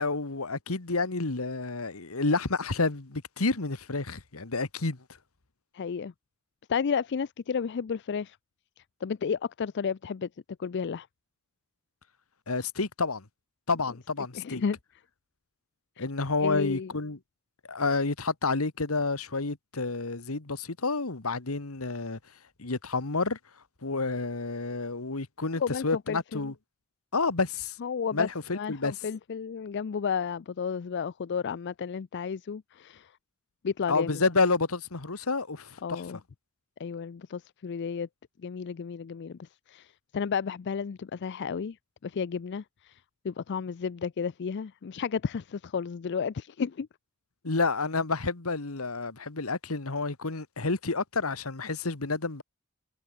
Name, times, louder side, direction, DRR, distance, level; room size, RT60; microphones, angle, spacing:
voice 1, 0.0-5.0 12.5-13.2 13.7-14.6 16.0-17.2 17.7-22.2 22.6-23.4 23.8-26.5 27.1-27.8 28.1-28.9 33.9-36.0 47.4-52.4, left 3 dB, 80° left, 1.7 m, -29 dB
voice 2, 5.7-6.1 6.7-8.4 8.8-10.3 10.6-11.1 14.3-14.8 16.0-16.1 16.4-16.9 25.6-26.5 27.8-28.3 28.5-33.1 33.6-34.2 35.8-36.2 36.8-38.1 38.4-41.8 42.0-43.0 43.2-46.9, left 6 dB, 55° left, 0.4 m, -32 dB
head